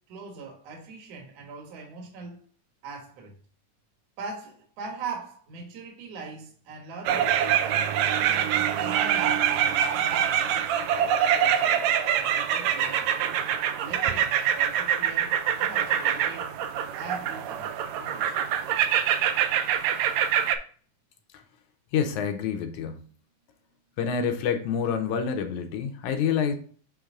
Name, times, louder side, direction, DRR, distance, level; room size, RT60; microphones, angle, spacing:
voice 1, 0.1-2.4 2.8-3.3 4.2-7.3 7.6-7.9 8.3-11.8 12.1-13.1 13.8-16.5 16.9-17.7 18.0-18.3, right 4 dB, 60° right, 2.4 m, -41 dB
sound 1, 7.0-20.6, right 9 dB, 80° right, 1.8 m, -25 dB
voice 2, 21.9-22.9 24.0-26.6, left 7 dB, 85° left, 2.2 m, -27 dB
8.4 x 3.2 x 3.7 m
omnidirectional pair, 3.4 m